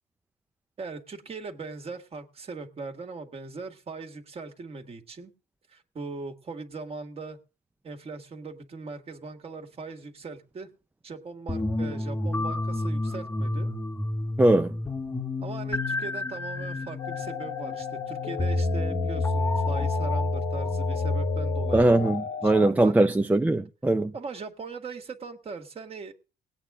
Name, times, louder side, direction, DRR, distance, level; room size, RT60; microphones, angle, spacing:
voice 1, 0.8-5.3 5.7-7.4 7.8-10.7 11.0-13.7 15.4-22.9 24.1-26.1, right 4 dB, 35° right, 1.8 m, -40 dB
sound 1, 11.5-21.8, left 2 dB, 15° left, 0.9 m, -29 dB
voice 2, 14.4-14.7 21.7-24.1, right 2 dB, 10° right, 0.5 m, -21 dB
sound 2, 17.0-22.7, left 9 dB, 80° left, 0.7 m, -35 dB
19.0 x 8.7 x 3.7 m
cardioid pair, 110°, 17 cm